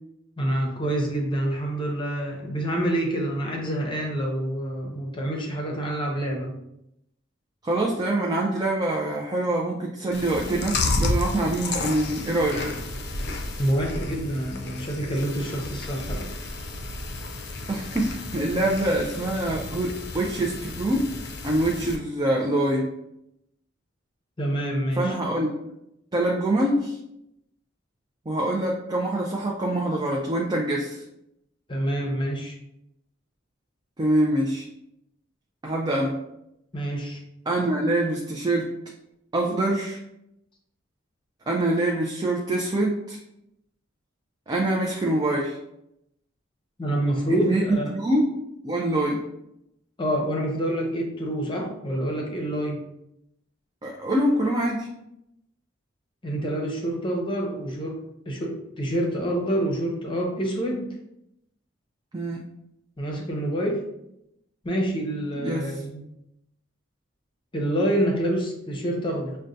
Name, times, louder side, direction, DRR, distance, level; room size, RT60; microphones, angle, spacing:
voice 1, 0.4-6.5 13.6-16.2 24.4-25.2 31.7-32.6 36.7-37.2 46.8-47.9 50.0-52.8 56.2-60.9 63.0-63.8 64.6-66.0 67.5-69.4, right 1 dB, 25° left, 0 dB, 0.7 m, -27 dB
voice 2, 7.6-12.8 17.7-21.1 21.4-22.9 25.0-25.5 26.1-27.0 28.3-31.0 34.0-34.6 35.6-36.2 37.5-38.7 39.3-40.0 41.5-43.2 44.5-45.6 47.4-47.6 47.9-48.3 48.6-49.2 53.8-54.9 62.1-62.4 65.4-65.8, right 1 dB, 20° right, -2 dB, 0.4 m, -25 dB
Chewing mastication, 10.1-22.0, left 2 dB, 60° left, 0.5 m, -32 dB
6.2 x 2.2 x 2.6 m, 0.82 s
head